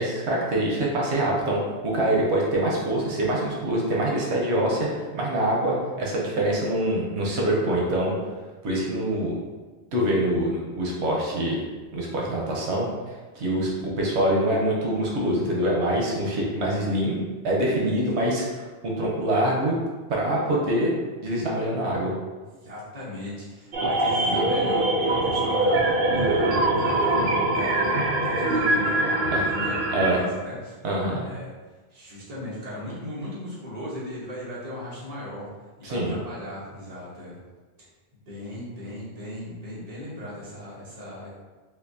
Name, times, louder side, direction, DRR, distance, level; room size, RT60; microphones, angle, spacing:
voice 1, 0.0-4.9 5.1-8.1 8.6-9.4 9.9-11.6 11.9-12.9 13.3-13.7 14.0-17.2 17.4-19.7 20.1-20.9 21.2-22.1 29.2-29.4 29.9-30.2 30.8-31.2 35.8-36.2, right 1 dB, 85° right, -3 dB, 1.0 m, -25 dB
voice 2, 22.4-31.5 31.9-35.5 35.8-37.4 37.8-37.9 38.3-41.3, left 1 dB, 40° right, -7 dB, 1.1 m, -37 dB
sound 1, 23.7-30.2, right 2 dB, 55° right, 0.6 m, -23 dB
4.2 x 2.6 x 2.7 m, 1.3 s
omnidirectional pair, 1.1 m